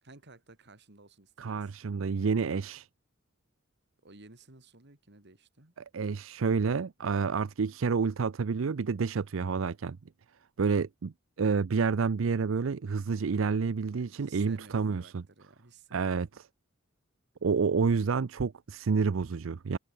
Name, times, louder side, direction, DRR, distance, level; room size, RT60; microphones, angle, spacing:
voice 1, 0.0-1.7 4.0-5.7 13.9-16.1, right 3 dB, 60° right, 2.6 m, -55 dB
voice 2, 1.4-2.9 5.9-10.0 10.6-11.1 11.4-15.2 15.9-16.4 17.4-19.8, right 5 dB, 75° right, 0.5 m, -29 dB
head